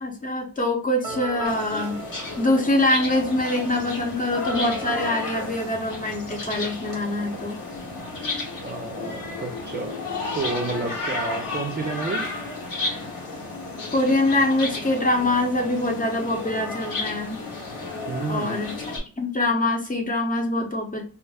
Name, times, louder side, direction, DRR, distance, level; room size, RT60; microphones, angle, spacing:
voice 1, 0.0-2.0 2.4-7.6 13.9-17.4 18.3-21.0, left 1 dB, 25° left, 2 dB, 0.8 m, -24 dB
sound 1, 1.0-6.8, right 3 dB, 10° right, 0.8 m, -40 dB
sound 2, 1.4-19.0, left 3 dB, 85° left, 1.3 m, -33 dB
voice 2, 8.6-10.1 10.3-12.3 18.1-18.7, right 3 dB, 35° right, 2 dB, 0.4 m, -30 dB
2.4 x 2.1 x 3.4 m, 0.39 s
wide cardioid pair, 110°, 32 cm